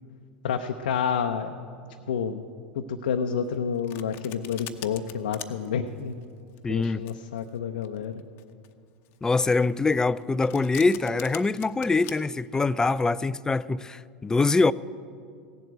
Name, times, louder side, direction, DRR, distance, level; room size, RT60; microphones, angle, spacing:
voice 1, 0.4-1.5 2.1-2.4 2.7-6.1 6.7-8.1, left 7 dB, 80° left, 0.7 m, -29 dB
Domestic sounds home sounds, 3.4-12.1, left 13 dB, 50° left, 0.8 m, -44 dB
voice 2, 6.6-7.0 9.2-14.7, left 3 dB, 15° left, 0.3 m, -24 dB
16.5 x 7.7 x 8.0 m
hypercardioid pair, 95°, 5 cm